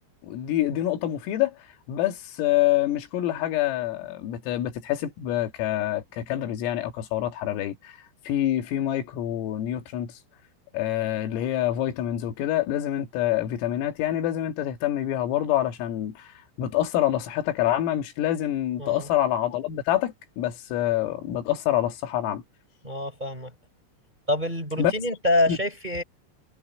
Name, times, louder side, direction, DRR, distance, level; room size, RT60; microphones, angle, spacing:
voice 1, 0.2-1.6 1.9-7.9 8.3-10.1 10.7-16.3 16.6-22.4 24.8-24.9 25.5-25.6, left 12 dB, 80° left, 4.7 m, -26 dB
voice 2, 22.8-23.5 24.3-26.0, left 1 dB, 10° right, 3.7 m, -26 dB
omnidirectional pair, 5.9 m